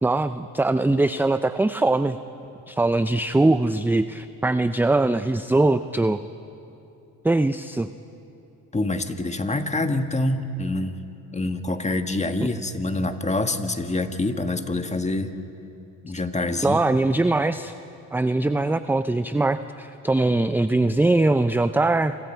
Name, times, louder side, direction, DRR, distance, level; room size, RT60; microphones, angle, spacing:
voice 1, 0.0-2.2 2.7-6.2 7.2-7.9 16.6-17.7 18.1-22.1, right 2 dB, 5° right, 11 dB, 0.5 m, -21 dB
voice 2, 8.7-11.0 11.3-15.3 16.0-16.8, left 2 dB, 15° left, 7 dB, 1.7 m, -26 dB
28.0 x 26.0 x 4.6 m, 2.9 s
supercardioid pair, 70°, 47 cm